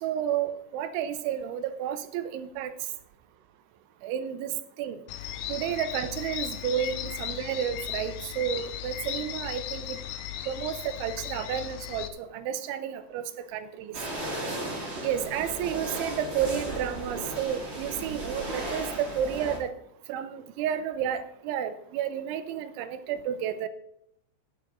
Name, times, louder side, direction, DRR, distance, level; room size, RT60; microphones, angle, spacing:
voice 1, 0.0-2.7 4.0-4.5 4.8-5.0 5.5-10.0 10.5-14.0 15.0-19.7 20.1-23.7, right 9 dB, 85° right, 11 dB, 3.3 m, -31 dB
sound 1, 5.1-12.1, left 11 dB, 80° left, 2.9 m, -36 dB
sound 2, 13.9-19.6, right 1 dB, 40° right, 0.9 m, -35 dB
13.5 x 11.0 x 3.9 m, 0.76 s
omnidirectional pair, 5.3 m